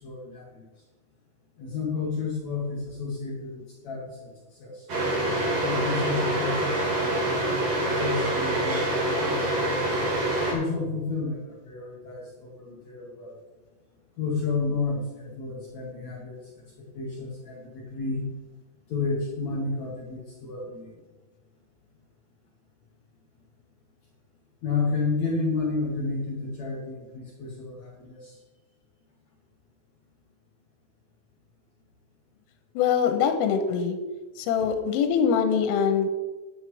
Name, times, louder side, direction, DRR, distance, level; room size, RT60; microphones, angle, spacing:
voice 1, 0.0-0.6 1.6-4.3 4.6-4.8 5.6-7.3 7.7-9.8 10.5-13.3 14.2-16.4 16.8-18.3 18.9-21.0 24.6-28.4 33.2-33.3 34.6-34.7, left 4 dB, 70° left, -3 dB, 1.7 m, -31 dB
sound 1, 4.9-10.5, right 1 dB, 40° right, 2.8 m, -26 dB
voice 2, 32.8-34.0 34.4-36.1, left 7 dB, 90° left, 7 dB, 3.5 m, -23 dB
10.0 x 9.3 x 4.8 m, 1.2 s
omnidirectional pair, 5.8 m